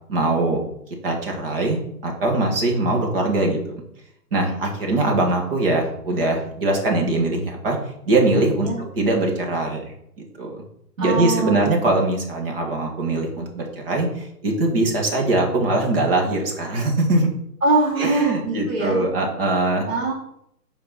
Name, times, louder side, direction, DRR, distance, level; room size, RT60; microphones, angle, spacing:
voice 1, 0.1-0.6 1.0-1.8 2.0-3.8 4.3-7.8 8.1-9.9 10.2-10.6 11.0-17.3 18.0-19.8, right 2 dB, 35° right, 1 dB, 1.8 m, -22 dB
voice 2, 11.0-11.8 17.6-19.0 19.8-20.1, right 3 dB, 55° right, -4 dB, 3.2 m, -23 dB
6.7 x 4.6 x 5.8 m, 0.76 s
hypercardioid pair, 160°, 47 cm